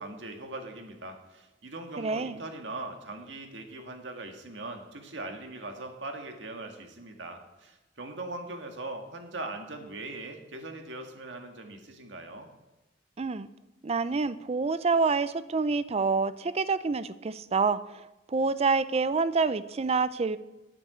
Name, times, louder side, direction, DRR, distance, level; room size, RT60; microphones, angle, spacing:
voice 1, 0.0-12.5, right 2 dB, 80° right, 4 dB, 1.7 m, -40 dB
voice 2, 2.0-2.4 13.2-13.5 13.8-17.8 18.3-20.4, right 4 dB, 35° right, 15 dB, 0.5 m, -27 dB
9.6 x 8.8 x 7.8 m, 1.0 s
head